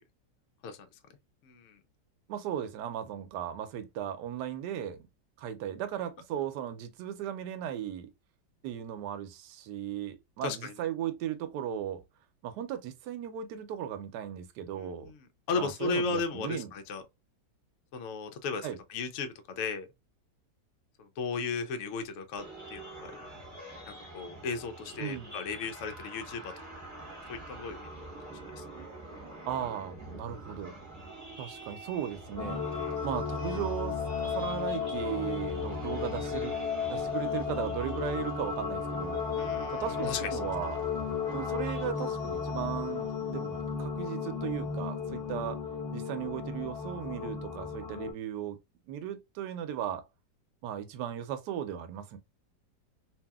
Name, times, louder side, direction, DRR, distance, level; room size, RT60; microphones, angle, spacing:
voice 1, 1.4-1.8 10.4-10.7 14.8-15.1 15.5-17.0 17.9-19.9 21.0-22.4 22.7-23.1 23.9-26.5 27.3-27.9 28.6-28.7 32.7-33.0 39.4-40.4, left 4 dB, 80° left, 0.6 m, -35 dB
voice 2, 2.3-5.0 5.4-8.1 8.6-12.0 12.4-15.1 15.6-16.7 18.6-18.8 25.0-25.3 29.5-30.8 31.4-32.6 33.0-36.6 36.9-39.4 39.7-40.9 41.3-45.6 45.9-48.6 48.9-50.0 50.6-52.2, right 10 dB, 75° right, 1.1 m, -36 dB
sound 1, 22.4-41.9, right 2 dB, 10° right, 0.9 m, -46 dB
sound 2, 32.4-48.1, left 6 dB, 20° left, 0.5 m, -34 dB
2.8 x 2.7 x 2.2 m
omnidirectional pair, 1.9 m